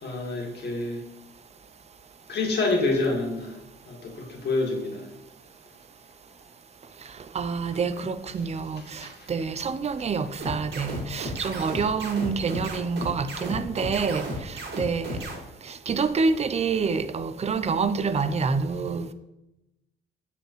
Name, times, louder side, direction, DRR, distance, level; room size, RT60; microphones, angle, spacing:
voice 1, 0.0-1.0 2.3-3.6 3.9-5.1 9.0-9.3 18.4-18.5, left 3 dB, 60° left, 2.1 m, -27 dB
voice 2, 7.3-15.2 15.6-19.1, right 5 dB, 35° right, 0.5 m, -27 dB
sound 1, 10.4-15.4, right 1 dB, 60° right, 1.9 m, -33 dB
6.8 x 6.7 x 3.1 m
cardioid pair, 90°, 20 cm